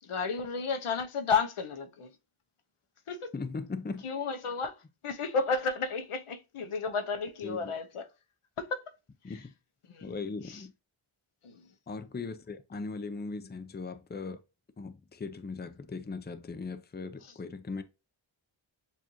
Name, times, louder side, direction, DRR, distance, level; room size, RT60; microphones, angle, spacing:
voice 1, 0.0-2.1 3.1-3.3 4.0-4.8 5.0-8.1 8.6-8.8 9.9-10.1 10.5-10.6 11.4-11.7, left 4 dB, 85° left, 0.7 m, -32 dB
voice 2, 3.3-4.1 7.4-7.7 9.2-9.5 10.0-10.7 11.9-14.4 14.8-17.8, left 4 dB, 20° left, 0.5 m, -39 dB
7.1 x 2.5 x 2.9 m
wide cardioid pair, 55°, 49 cm